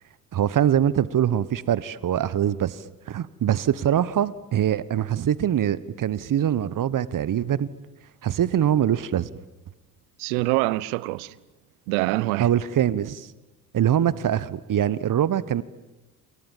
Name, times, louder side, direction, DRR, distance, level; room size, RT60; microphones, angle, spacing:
voice 1, 0.3-7.7 8.2-9.3 12.4-13.3 13.7-15.6, right 10 dB, 40° right, 1.3 m, -23 dB
voice 2, 10.2-11.3 11.9-12.5, right 21 dB, 70° right, 1.1 m, -25 dB
28.5 x 28.0 x 7.4 m
hypercardioid pair, 55°, 47 cm